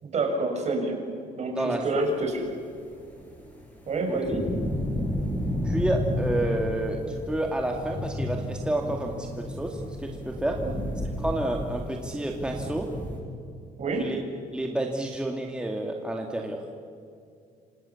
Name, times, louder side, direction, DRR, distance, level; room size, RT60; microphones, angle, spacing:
voice 1, 0.0-1.0 1.3-2.4 3.9-4.5 10.6-10.7 13.8-14.1, right 2 dB, 40° right, 4 dB, 6.2 m, -28 dB
voice 2, 1.5-1.8 4.1-4.2 5.6-7.0 7.3-10.6 11.2-12.9 14.0-14.2 14.5-16.6, right 1 dB, 5° right, 1 dB, 2.2 m, -29 dB
sound 1, 2.7-13.2, left 1 dB, 10° left, 7.6 m, -32 dB
28.0 x 26.5 x 7.1 m, 2.4 s
cardioid pair, 125°, 16 cm